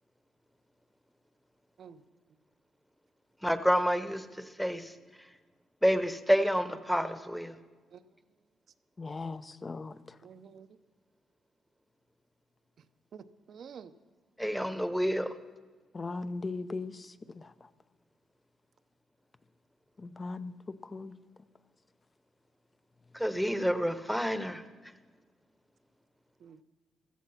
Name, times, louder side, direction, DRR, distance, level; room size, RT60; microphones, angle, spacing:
voice 1, 3.4-5.3 5.8-7.5 14.4-15.3 23.1-24.9, equal, ahead, 1.1 m, -29 dB
voice 2, 9.0-10.2 15.9-17.7 20.0-21.1, left 3 dB, 30° left, 0.7 m, -39 dB
voice 3, 10.2-10.7 13.1-13.9 26.4-26.6, right 7 dB, 60° right, 0.8 m, -49 dB
16.0 x 13.5 x 5.8 m
cardioid pair, 90°, 0 cm